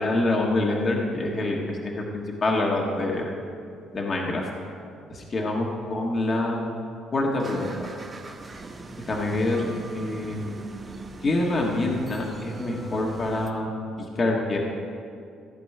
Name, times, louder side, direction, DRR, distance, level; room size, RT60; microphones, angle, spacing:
voice 1, 0.0-3.3 3.9-4.5 5.1-6.7 7.1-7.9 9.0-10.4 11.2-13.7 14.0-14.6, left 2 dB, 35° left, -1 dB, 1.5 m, -26 dB
sound 1, 7.4-13.5, right 3 dB, 25° right, 0.9 m, -40 dB
15.0 x 5.1 x 9.2 m, 2.4 s
cardioid pair, 130°, 0 cm